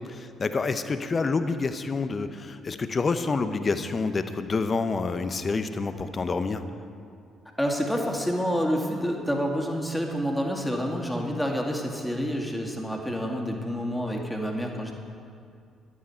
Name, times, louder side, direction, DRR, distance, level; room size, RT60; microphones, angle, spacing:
voice 1, 0.1-6.6, left 4 dB, 35° left, 10 dB, 0.9 m, -28 dB
voice 2, 7.6-14.9, equal, 5° left, 0 dB, 2.3 m, -28 dB
14.0 x 12.0 x 4.5 m, 2.3 s
figure-of-eight pair, 45°, 0 cm